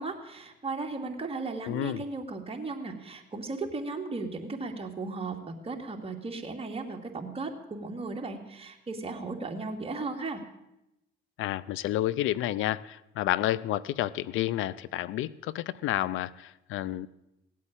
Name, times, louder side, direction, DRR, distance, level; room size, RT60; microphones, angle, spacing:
voice 1, 0.0-10.4, right 3 dB, 30° right, 3 dB, 2.4 m, -36 dB
voice 2, 1.7-2.0 11.4-17.1, left 14 dB, 85° left, 20 dB, 0.5 m, -30 dB
17.5 x 8.4 x 8.9 m, 0.89 s
cardioid pair, 90°, 20 cm